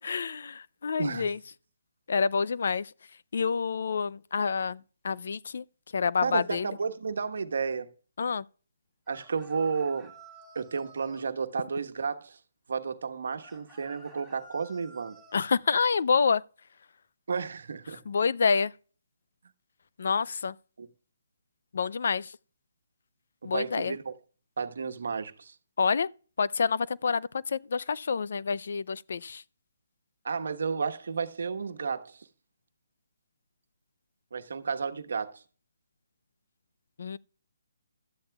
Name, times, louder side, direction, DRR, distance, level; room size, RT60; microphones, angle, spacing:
voice 1, 0.0-1.4 2.1-2.9 3.3-5.6 5.9-6.7 8.2-8.4 15.3-16.4 18.1-18.7 20.0-20.6 21.7-22.4 23.4-24.0 25.8-26.1 26.4-29.4 37.0-37.2, left 5 dB, 60° left, 0.4 m, -28 dB
voice 2, 1.0-1.3 6.2-7.9 9.1-10.1 10.5-12.4 12.7-15.2 17.3-18.0 20.8-20.9 23.4-24.1 24.6-25.5 30.2-32.3 34.3-35.4, right 5 dB, 65° right, 1.2 m, -32 dB
sound 1, 9.1-11.3 13.4-15.4, right 2 dB, ahead, 4.5 m, -52 dB
16.0 x 12.0 x 2.3 m
hypercardioid pair, 160°, 0 cm